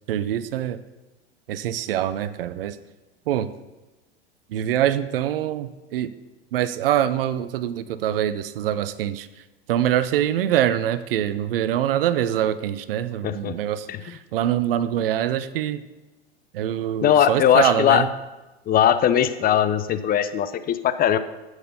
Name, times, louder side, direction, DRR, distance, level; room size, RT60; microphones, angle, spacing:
voice 1, 0.1-0.8 1.5-2.8 3.3-3.5 4.5-6.1 6.5-9.3 9.7-15.8 16.5-18.1, right 11 dB, 65° right, 15 dB, 0.7 m, -24 dB
voice 2, 13.2-13.5 13.9-14.0 17.0-18.0 18.7-21.2, left 10 dB, 30° left, 12 dB, 0.7 m, -19 dB
15.0 x 6.4 x 5.5 m, 1.1 s
hypercardioid pair, 90°, 30 cm